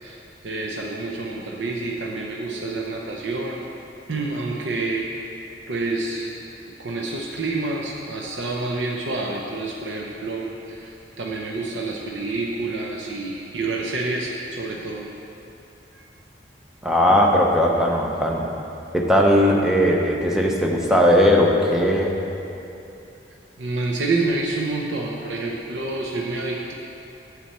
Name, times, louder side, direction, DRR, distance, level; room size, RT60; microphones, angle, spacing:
voice 1, 0.0-3.6 4.1-5.1 5.7-6.3 6.8-15.1 15.9-16.1 23.6-26.7, right 3 dB, 80° right, -1 dB, 0.7 m, -28 dB
voice 2, 16.8-18.5 18.9-22.1, equal, 5° right, -1 dB, 0.7 m, -18 dB
9.0 x 7.6 x 4.2 m, 2.8 s
head